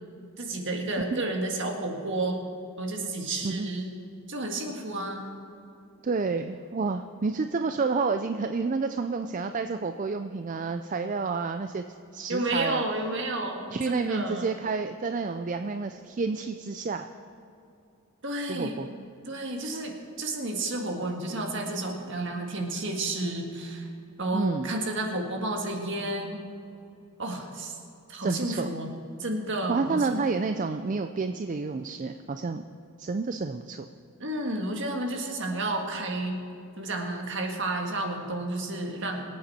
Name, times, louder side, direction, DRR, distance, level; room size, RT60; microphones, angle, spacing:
voice 1, 0.4-2.4 2.8-4.0 4.3-5.3 12.3-14.5 18.2-18.8 19.3-23.9 24.2-26.4 27.2-27.8 28.1-28.9 29.2-30.2 34.2-36.4 36.8-39.2, right 2 dB, 55° right, 2 dB, 1.8 m, -31 dB
voice 2, 6.0-11.8 12.1-12.8 13.7-17.1 18.5-18.9 24.3-24.7 28.2-28.7 29.7-32.7 33.0-33.9, right 4 dB, 35° right, 8 dB, 0.4 m, -29 dB
24.0 x 8.8 x 4.3 m, 2.7 s
head